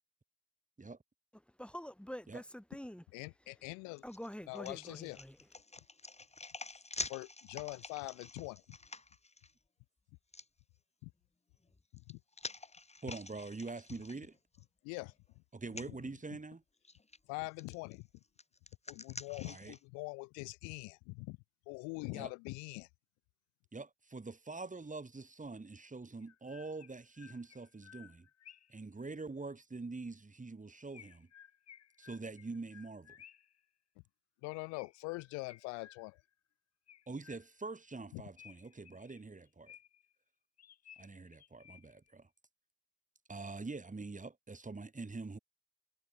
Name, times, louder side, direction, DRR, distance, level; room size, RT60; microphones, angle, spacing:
voice 1, 1.6-3.0 4.0-5.4, equal, 5° left, 2.8 m, -46 dB
voice 2, 3.1-4.0 4.5-5.2 7.1-8.8 11.0-11.1 11.9-12.2 14.8-15.1 15.9-16.0 17.3-18.1 18.9-21.4 21.7-22.9 34.4-36.2 38.1-38.2, left 31 dB, 85° left, 1.1 m, -43 dB
sound 1, 4.0-9.5 10.3-10.5 11.6-14.6 15.0-15.1 15.7-15.9 16.8-17.2 17.6-19.8, left 3 dB, 20° left, 2.5 m, -48 dB
voice 3, 13.0-14.4 15.5-16.6 19.4-19.7 22.1-22.3 23.7-28.3 28.7-31.3 32.0-33.2 37.1-39.7 41.0-42.3 43.3-45.4, right 3 dB, 25° right, 3.3 m, -45 dB
Chirp tweet, 26.2-28.8 30.9-33.6 34.7-36.3 36.9-37.7 38.4-40.1 40.6-42.1, left 10 dB, 60° left, 2.1 m, -59 dB
hypercardioid pair, 45°, 29 cm